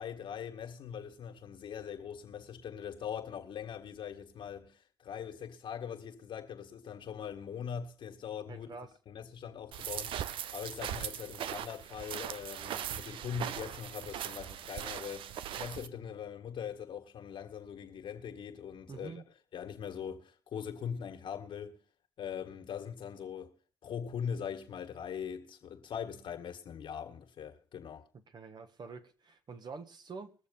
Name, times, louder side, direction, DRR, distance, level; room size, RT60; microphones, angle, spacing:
voice 1, 0.0-8.7 9.1-19.2 19.5-21.8 22.2-23.5 23.8-28.1, left 8 dB, 70° left, 1.9 m, -41 dB
voice 2, 8.5-8.9 18.9-19.2 28.3-30.3, right 4 dB, 55° right, 1.5 m, -46 dB
sound 1, 9.7-15.9, right 10 dB, 75° right, 0.6 m, -40 dB
20.5 x 7.1 x 5.5 m
supercardioid pair, 55°, 9 cm